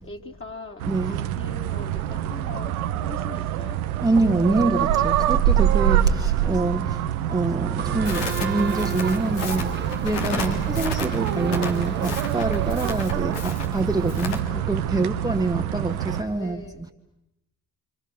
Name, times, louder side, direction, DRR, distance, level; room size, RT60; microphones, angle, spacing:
voice 1, 0.0-2.7 3.0-3.8 14.8-15.3 16.3-16.8, left 3 dB, 30° left, 3.7 m, -41 dB
voice 2, 0.8-1.2 4.0-7.0 7.3-9.7 10.0-16.9, right 2 dB, 10° right, 1.5 m, -26 dB
sound 1, 0.8-16.2, right 11 dB, 90° right, 0.9 m, -25 dB
sound 2, 7.8-15.1, right 4 dB, 25° right, 1.5 m, -36 dB
Crackle, 8.0-14.4, left 4 dB, 75° left, 3.1 m, -34 dB
29.5 x 27.0 x 6.4 m
hypercardioid pair, 45°, 41 cm